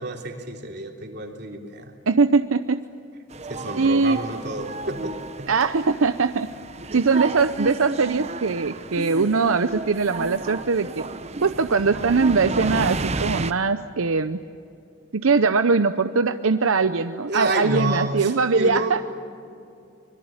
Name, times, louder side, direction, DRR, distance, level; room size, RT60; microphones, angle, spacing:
voice 1, 0.0-1.9 3.5-5.5 17.3-19.0, right 1 dB, 50° right, 2 dB, 3.5 m, -29 dB
voice 2, 2.1-2.8 3.8-4.2 5.5-6.5 6.9-11.0 11.4-14.4 15.1-19.0, right 4 dB, 85° right, 10 dB, 0.7 m, -21 dB
sound 1, 3.3-13.5, right 3 dB, 30° right, 0.8 m, -32 dB
25.5 x 22.0 x 8.9 m, 2.6 s
head